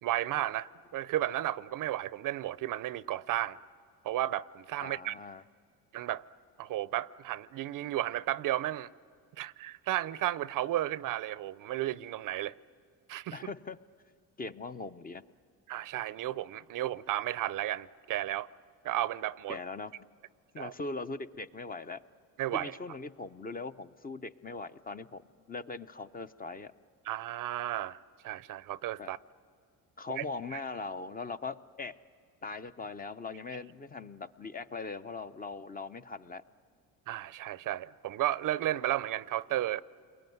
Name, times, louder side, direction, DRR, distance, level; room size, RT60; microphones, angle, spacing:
voice 1, 0.0-3.6 4.0-5.2 5.9-6.2 6.6-8.9 9.4-12.5 13.1-13.4 15.7-18.5 18.8-19.6 20.6-20.7 22.4-22.7 27.1-29.2 30.2-30.3 30.5-30.6 37.1-39.8, right 14 dB, 55° right, 0.6 m, -33 dB
voice 2, 4.8-5.4 13.3-13.8 14.4-15.2 19.5-19.9 20.5-22.0 22.5-25.2 25.5-26.7 29.0-29.1 30.0-32.0 32.4-36.4, left 3 dB, 25° left, 0.6 m, -40 dB
29.0 x 22.0 x 9.3 m
cardioid pair, 95°, 38 cm